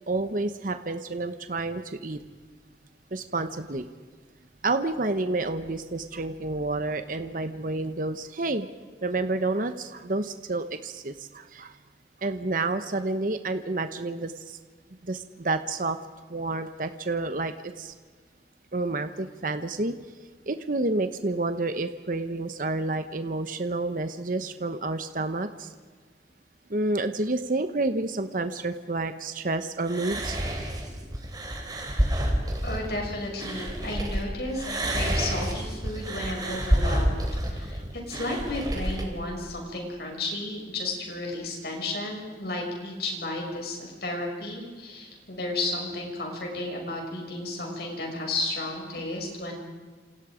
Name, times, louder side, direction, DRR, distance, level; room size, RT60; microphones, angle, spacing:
voice 1, 0.1-2.2 3.1-3.8 4.6-8.7 9.0-11.7 12.2-14.6 15.1-16.0 16.3-17.9 18.7-20.0 20.5-25.7 26.7-30.4, right 2 dB, 45° right, 9 dB, 1.0 m, -29 dB
sound 1, 29.8-34.2 34.5-39.0, equal, 20° right, 3.6 m, -28 dB
voice 2, 32.6-37.2 37.5-49.5, left 2 dB, 60° left, 1 dB, 6.5 m, -33 dB
29.0 x 28.0 x 5.1 m, 1.5 s
head